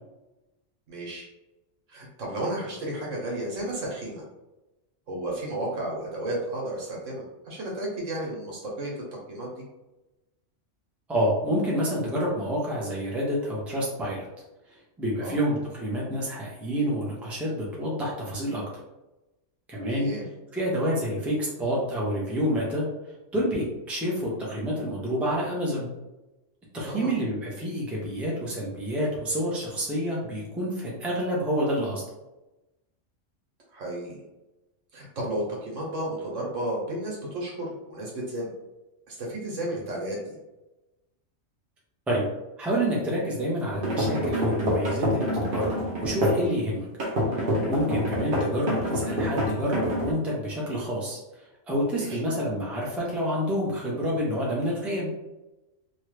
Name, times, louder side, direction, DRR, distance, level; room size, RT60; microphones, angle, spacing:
voice 1, 0.9-1.3 1.9-4.2 5.1-9.6 15.2-15.4 19.9-20.3 26.9-27.2 33.7-34.2 34.9-38.5 39.1-40.4 51.9-52.2, right 1 dB, 85° right, -3 dB, 1.4 m, -33 dB
voice 2, 11.1-14.3 14.7-18.6 19.7-20.1 20.5-22.8 23.3-25.9 26.7-32.0 42.1-42.3 42.6-45.2 45.5-46.8 47.3-55.1, equal, ahead, -4 dB, 0.5 m, -28 dB
sound 1, 43.7-46.5 47.0-50.1, equal, 50° right, 0.9 m, -27 dB
3.0 x 2.4 x 3.2 m, 1.0 s
omnidirectional pair, 1.3 m